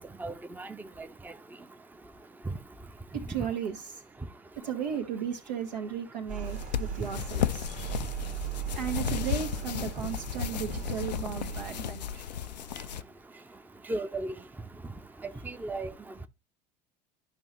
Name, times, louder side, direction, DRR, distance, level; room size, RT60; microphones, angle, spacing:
voice 1, 0.2-1.3 13.9-14.3 15.4-15.9, right 2 dB, 10° right, 0.7 m, -36 dB
voice 2, 3.1-4.0 4.6-7.9 8.7-12.0, right 8 dB, 80° right, 1.6 m, -35 dB
sound 1, 6.3-11.9, right 10 dB, 40° right, 1.4 m, -38 dB
sound 2, 6.4-13.0, left 9 dB, 80° left, 0.5 m, -34 dB
12.5 x 5.4 x 3.2 m
figure-of-eight pair, 65°, 21 cm